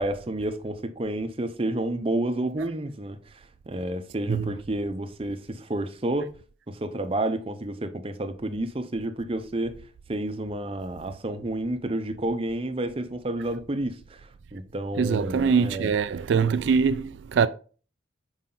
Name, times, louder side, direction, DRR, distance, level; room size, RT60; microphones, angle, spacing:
voice 1, 0.0-6.3 6.7-9.8 10.1-15.9, right 1 dB, 30° right, 0.6 m, -30 dB
voice 2, 15.0-17.5, right 6 dB, 70° right, 0.3 m, -23 dB
5.8 x 4.8 x 3.8 m
head